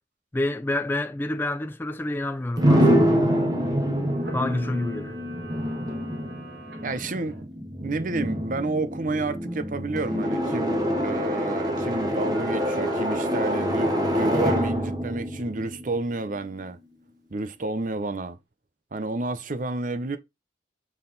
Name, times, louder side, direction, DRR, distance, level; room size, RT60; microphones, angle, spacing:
voice 1, 0.3-2.9 4.3-5.2, left 1 dB, 10° left, 0.3 m, -28 dB
sound 1, 2.6-16.4, equal, 20° right, 1.4 m, -26 dB
Camera, 4.1-7.4 11.0-11.7 12.2-14.1, right 2 dB, 60° right, 1.8 m, -45 dB
voice 2, 6.8-16.8 17.3-18.4 18.9-20.2, right 2 dB, 45° right, 0.6 m, -30 dB
5.7 x 4.3 x 3.9 m
head